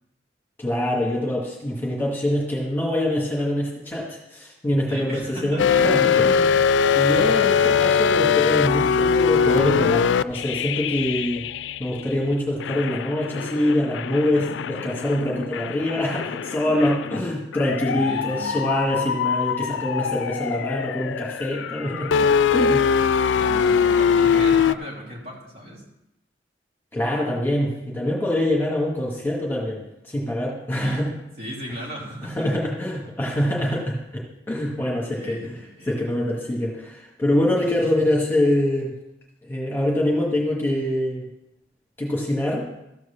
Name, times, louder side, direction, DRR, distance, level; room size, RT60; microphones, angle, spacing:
voice 1, 0.6-6.6 6.9-11.4 11.8-23.0 26.9-31.1 32.2-35.6 35.8-38.9 39.4-41.3 42.0-42.7, left 1 dB, 10° left, -3 dB, 2.0 m, -25 dB
voice 2, 4.9-6.1 7.1-7.3 17.9-18.7 23.3-25.8 30.7-31.0 31.4-32.7 33.6-33.7 35.1-35.9 37.8-38.1, equal, 55° right, -4 dB, 3.6 m, -36 dB
sound 1, 5.6-12.1 12.6-24.7, left 6 dB, 85° left, 0.3 m, -22 dB
13.5 x 4.7 x 7.2 m, 0.88 s
head